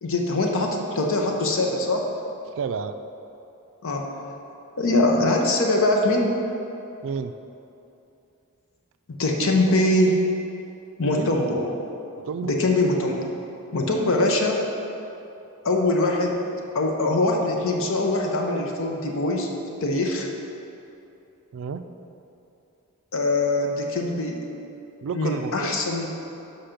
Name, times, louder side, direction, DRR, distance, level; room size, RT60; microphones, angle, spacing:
voice 1, 0.0-2.1 3.8-4.1 4.8-6.4 9.1-10.2 11.0-11.7 12.4-13.2 13.7-14.7 15.6-16.4 16.7-19.5 19.8-20.3 23.1-24.4 25.1-26.1, left 2 dB, 65° left, 1 dB, 0.8 m, -22 dB
voice 2, 2.6-3.0 7.0-7.3 9.4-9.5 11.1-11.3 12.2-12.6 21.5-21.8 25.0-25.7, right 6 dB, 65° right, 9 dB, 0.3 m, -30 dB
5.9 x 5.7 x 5.1 m, 2.8 s
head